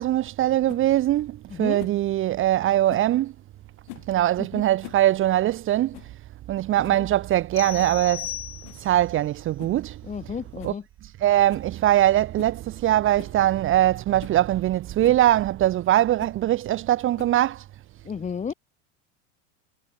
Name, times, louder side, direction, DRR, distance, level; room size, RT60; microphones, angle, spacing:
voice 1, 0.0-3.3 4.1-6.0 6.5-8.3 8.8-10.0 10.6-10.7 11.2-17.6, right 13 dB, 35° right, 0.9 m, -22 dB
sound 1, 0.7-0.9 1.8-2.0 2.9-3.1 3.9-4.1 4.6-5.1 5.3-5.4 5.9-6.2 6.5-6.6 6.8-7.1 7.8-8.0 8.6-8.9 9.6-9.8 10.2-10.3 10.6-10.8 11.1-11.2 11.5-11.7 12.4-12.6 13.2-13.4 13.9-14.0 14.2-14.4 15.0-15.2 16.2-16.4 17.2-17.5, left 40 dB or more, 65° left, 6.1 m, -44 dB
voice 2, 1.5-1.8 4.4-4.6 7.0-7.1 10.0-10.8 18.0-18.5, left 6 dB, 20° left, 1.3 m, -32 dB
sound 2, 7.6-9.1, left 13 dB, 35° left, 1.7 m, -36 dB
supercardioid pair, 115°, 37 cm